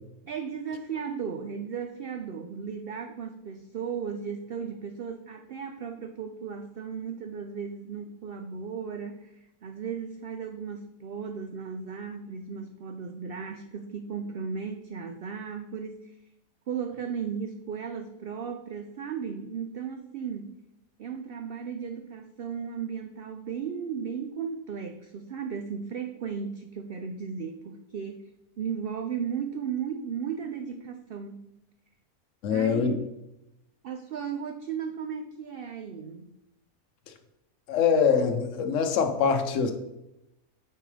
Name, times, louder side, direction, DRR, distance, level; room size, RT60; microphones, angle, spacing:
voice 1, 0.2-16.2 16.7-20.5 21.0-28.2 28.6-31.5 32.5-33.1 33.8-36.3, right 6 dB, 80° right, 6 dB, 0.5 m, -35 dB
voice 2, 32.4-33.0 37.7-39.7, left 6 dB, 65° left, 6 dB, 1.0 m, -24 dB
8.7 x 4.6 x 3.3 m, 0.89 s
omnidirectional pair, 1.5 m